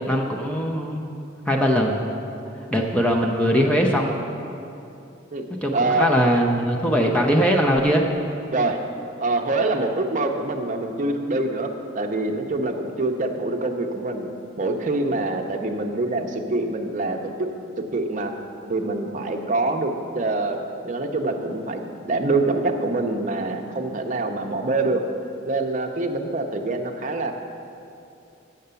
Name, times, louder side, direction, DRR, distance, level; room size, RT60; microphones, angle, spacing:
voice 1, 0.0-2.2 2.5-4.2 5.6-8.1, equal, 5° left, 0 dB, 0.5 m, -21 dB
voice 2, 5.7-6.1 8.5-8.8 9.2-11.7 11.9-14.3 14.6-17.5 17.8-18.3 18.7-20.6 20.8-25.0 25.5-27.3, right 2 dB, 35° right, 4 dB, 0.6 m, -25 dB
7.8 x 6.6 x 6.8 m, 2.7 s
head